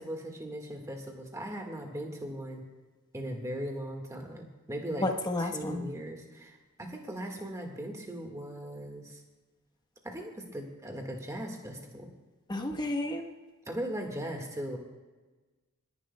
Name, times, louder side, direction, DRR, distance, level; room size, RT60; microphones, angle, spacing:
voice 1, 0.0-2.6 3.1-5.1 5.5-9.2 10.0-12.1 13.7-14.8, right 1 dB, 15° right, 2 dB, 1.6 m, -38 dB
voice 2, 5.0-5.9 12.5-13.2, left 2 dB, 20° left, 4 dB, 1.1 m, -31 dB
26.5 x 10.5 x 2.2 m, 1.3 s
head